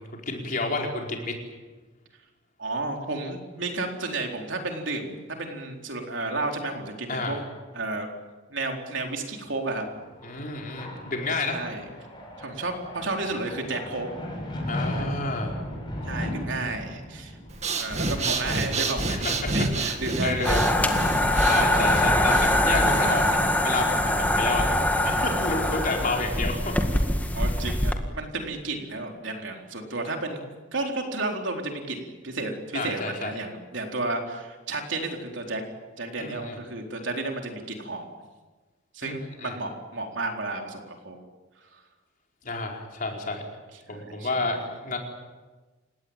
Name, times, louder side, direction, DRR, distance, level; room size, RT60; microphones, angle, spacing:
voice 1, 0.0-1.3 7.1-7.4 10.2-11.6 14.7-15.5 19.1-19.7 20.2-20.7 21.4-24.6 25.0-26.7 32.7-33.3 36.2-36.6 39.0-39.5 42.4-43.4 43.9-45.0, left 2 dB, 45° left, 1 dB, 4.9 m, -30 dB
voice 2, 2.6-7.4 7.7-8.1 8.5-9.9 11.5-11.8 12.4-14.1 16.0-17.4 17.8-19.3 19.5-20.9 21.3-22.0 26.3-26.4 27.3-30.4 30.7-35.6 36.0-38.0 38.9-41.2 41.7-41.8 43.9-44.4, right 2 dB, 65° right, 2 dB, 4.1 m, -32 dB
sound 1, 9.6-20.9, left 1 dB, 25° left, 7.2 m, -37 dB
Breathing, 17.5-23.5, right 2 dB, 35° right, 2.3 m, -29 dB
sound 2, 20.4-27.9, left 1 dB, 10° left, 1.9 m, -23 dB
29.5 x 18.0 x 9.0 m, 1.3 s
head